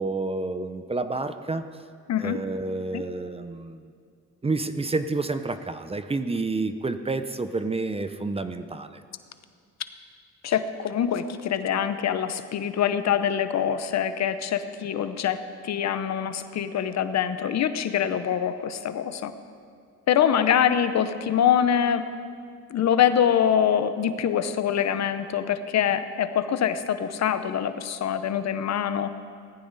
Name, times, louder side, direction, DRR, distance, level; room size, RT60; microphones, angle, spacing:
voice 1, 0.0-1.7 2.2-3.9 4.4-9.0, right 3 dB, 20° right, 10 dB, 0.7 m, -29 dB
voice 2, 10.4-19.3 20.1-22.1 22.7-29.1, left 9 dB, 60° left, 11 dB, 0.9 m, -24 dB
18.5 x 14.5 x 4.1 m, 2.2 s
cardioid pair, 90°, 30 cm